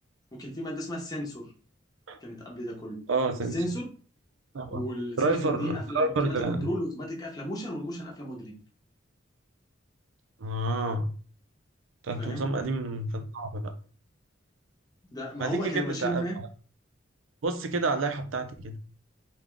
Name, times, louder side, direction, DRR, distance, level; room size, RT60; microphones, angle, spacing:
voice 1, 0.3-1.5 2.2-3.0 3.5-3.9 4.7-8.6 12.2-12.5 15.1-16.4, equal, 20° left, 0.8 m, -34 dB
voice 2, 3.1-3.6 4.5-4.8 5.2-6.7 10.4-11.1 12.0-13.7 15.4-16.5 17.4-18.8, right 2 dB, 85° right, 0.5 m, -29 dB
3.4 x 2.2 x 3.8 m
head